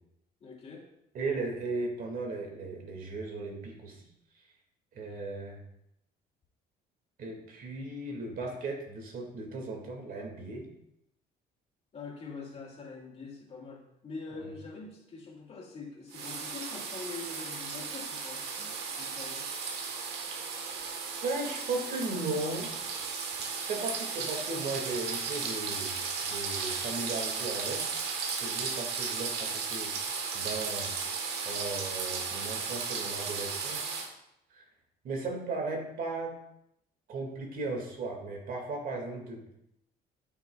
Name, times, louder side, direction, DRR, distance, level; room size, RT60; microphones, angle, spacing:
voice 1, 0.4-0.8 11.9-19.4 25.7-25.9, left 4 dB, 35° left, -2 dB, 2.5 m, -44 dB
voice 2, 1.1-4.1 4.9-5.6 7.2-10.7 14.3-14.5 21.2-22.7 23.6-26.0 26.2-30.9 31.4-34.0 34.5-34.7 35.0-36.4 37.1-39.5, right 3 dB, 55° right, 2 dB, 2.1 m, -36 dB
sound 1, 16.1-34.1, right 5 dB, 80° right, 1.3 m, -35 dB
12.0 x 6.2 x 2.3 m, 0.81 s
cardioid pair, 110°, 17 cm